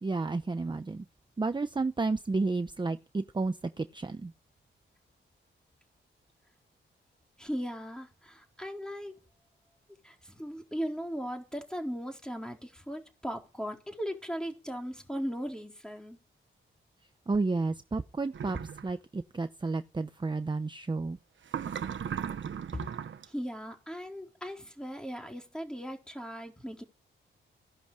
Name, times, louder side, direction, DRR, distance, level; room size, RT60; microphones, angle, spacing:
voice 1, 0.0-1.0 1.4-4.3 17.3-21.2, right 3 dB, 20° right, 0.9 m, -31 dB
voice 2, 7.4-9.2 10.0-16.2 22.7-22.8 23.3-26.8, equal, 5° left, 4.2 m, -38 dB
sound 1, 18.3-18.8 21.5-23.3, right 8 dB, 65° right, 1.2 m, -36 dB
17.0 x 11.5 x 5.0 m
cardioid pair, 100°, 21 cm